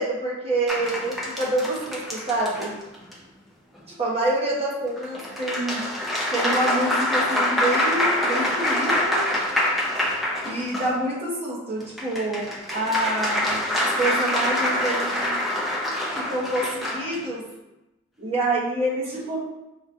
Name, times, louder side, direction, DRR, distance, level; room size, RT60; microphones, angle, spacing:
voice 1, 0.0-2.7 4.0-5.8 6.3-9.3 10.4-13.6 14.0-15.3 16.1-17.5 18.2-19.4, right 1 dB, 30° right, -5 dB, 1.0 m, -27 dB
sound 1, 0.7-3.1 5.0-10.9 11.8-17.2, left 1 dB, ahead, 0.4 m, -25 dB
5.0 x 2.3 x 2.6 m, 0.96 s
head